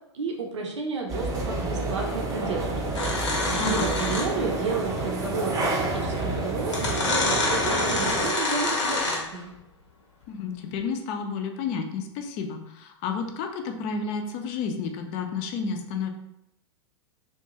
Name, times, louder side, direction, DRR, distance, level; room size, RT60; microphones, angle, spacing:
voice 1, 0.1-2.7 3.5-9.5, right 4 dB, 70° right, 1 dB, 0.5 m, -32 dB
sound 1, 1.1-8.3, right 2 dB, 20° right, 0.6 m, -29 dB
sound 2, 2.9-4.5 5.8-5.9 6.7-9.4, left 2 dB, 70° left, 0.7 m, -27 dB
voice 2, 3.5-3.9 10.3-16.1, left 5 dB, 35° left, 4 dB, 0.4 m, -31 dB
2.5 x 2.2 x 2.9 m, 0.79 s
figure-of-eight pair, 95°, 15 cm